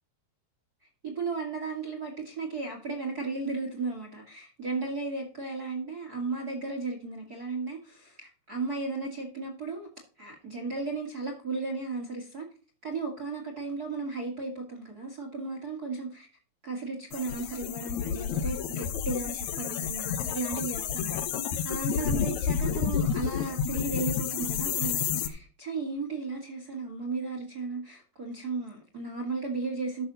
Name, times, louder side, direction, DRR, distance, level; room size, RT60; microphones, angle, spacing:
voice 1, 1.0-9.9 10.2-12.5 12.8-16.3 16.6-21.2 21.6-30.1, right 3 dB, 35° right, 3 dB, 1.7 m, -35 dB
sound 1, 17.1-25.3, left 8 dB, 70° left, 1.9 m, -30 dB
13.0 x 6.3 x 4.0 m, 0.38 s
omnidirectional pair, 4.6 m